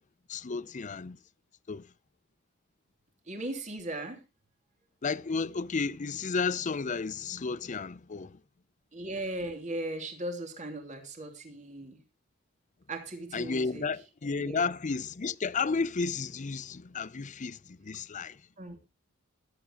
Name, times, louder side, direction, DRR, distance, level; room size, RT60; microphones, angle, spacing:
voice 1, 0.3-1.2 1.7-1.9 5.0-8.4 13.3-18.4, left 4 dB, 35° left, 0.5 m, -32 dB
voice 2, 3.3-4.2 8.9-12.0 12.9-13.8 14.4-14.7 18.6-18.8, right 1 dB, 35° right, 3.0 m, -38 dB
20.0 x 8.5 x 3.0 m
head